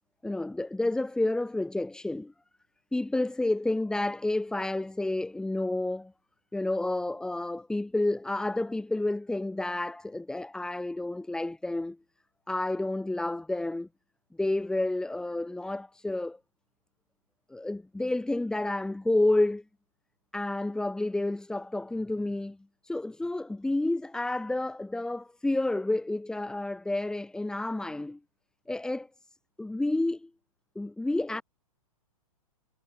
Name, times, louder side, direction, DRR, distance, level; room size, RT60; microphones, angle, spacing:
voice 1, 0.2-2.3 2.9-6.1 6.5-12.0 12.5-13.9 14.4-16.4 17.5-19.6 20.3-22.6 22.8-28.2 28.7-29.1 29.6-30.3 30.7-31.4, left 2 dB, 5° left, 1.6 m, -30 dB
figure-of-eight pair, 115°, 19 cm